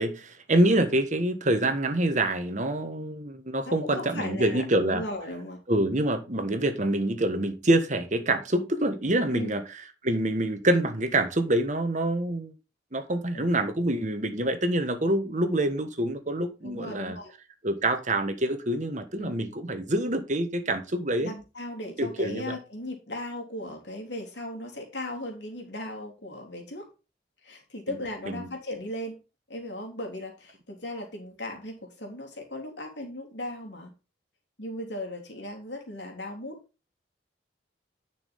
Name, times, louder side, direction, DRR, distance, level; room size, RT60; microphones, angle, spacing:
voice 1, 0.0-5.0 5.7-9.6 10.0-12.5 12.9-17.2 17.6-21.3 22.0-22.6 27.9-28.0 28.3-28.5, right 1 dB, 45° right, 1.4 m, -26 dB
voice 2, 3.6-5.6 9.3-9.6 13.3-13.5 16.6-17.3 19.2-19.4 21.2-26.9 27.4-29.2 29.5-33.9 34.6-36.6, left 1 dB, 75° left, 3.4 m, -37 dB
11.0 x 6.2 x 3.7 m
head